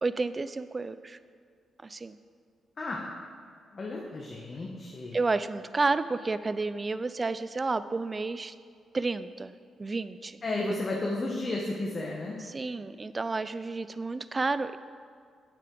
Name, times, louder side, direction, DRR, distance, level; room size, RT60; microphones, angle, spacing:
voice 1, 0.0-1.2 1.8-2.2 5.1-8.5 8.9-9.5 9.8-10.4 12.5-14.8, right 3 dB, 35° right, 14 dB, 0.4 m, -31 dB
voice 2, 3.7-5.2 10.4-12.4, left 2 dB, 45° left, -2 dB, 1.1 m, -33 dB
9.1 x 7.4 x 3.9 m, 2.2 s
supercardioid pair, 50°, 0 cm